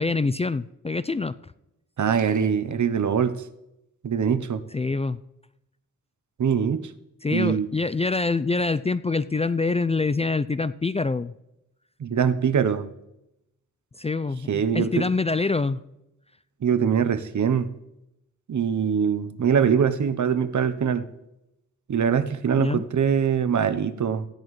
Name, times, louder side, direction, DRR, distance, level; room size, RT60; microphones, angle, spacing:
voice 1, 0.0-1.4 4.7-5.2 7.2-11.3 14.0-15.8 22.6-22.8, left 3 dB, 20° left, 15 dB, 0.3 m, -25 dB
voice 2, 2.0-3.4 4.0-4.6 6.4-6.8 7.3-7.7 12.0-12.9 14.5-15.1 16.6-17.7 18.5-21.0 21.9-24.3, right 7 dB, 65° right, 12 dB, 0.8 m, -23 dB
15.5 x 10.5 x 3.2 m, 0.87 s
cardioid pair, 55°, 32 cm